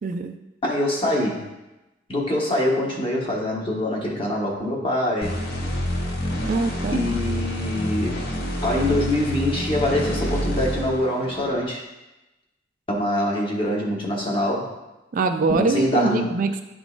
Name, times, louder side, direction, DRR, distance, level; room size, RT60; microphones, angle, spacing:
voice 1, 0.0-0.3 6.4-7.0 15.1-16.6, right 3 dB, 45° right, 6 dB, 0.3 m, -23 dB
voice 2, 0.6-1.5 2.1-5.4 6.9-8.2 8.6-11.8 12.9-14.7 15.5-16.4, left 1 dB, 30° left, -3 dB, 1.2 m, -24 dB
sound 1, 5.2-11.7, equal, 60° left, 0.8 m, -28 dB
10.5 x 3.7 x 2.4 m, 1.0 s
head